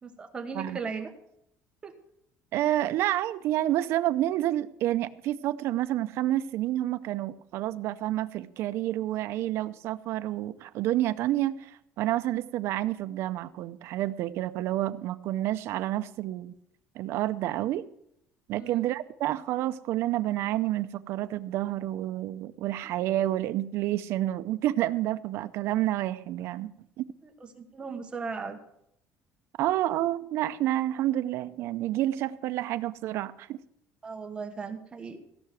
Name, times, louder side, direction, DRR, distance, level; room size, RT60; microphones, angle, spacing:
voice 1, 0.0-1.1 1.8-1.9 18.6-18.9 22.8-23.0 27.6-28.6 34.0-35.2, right 5 dB, 20° right, 5 dB, 1.3 m, -37 dB
voice 2, 2.5-16.5 17.0-17.9 18.5-26.7 27.0-27.1 29.6-33.6, right 14 dB, 55° right, 12 dB, 0.6 m, -29 dB
16.0 x 5.9 x 7.6 m, 0.76 s
cardioid pair, 160°, 5 cm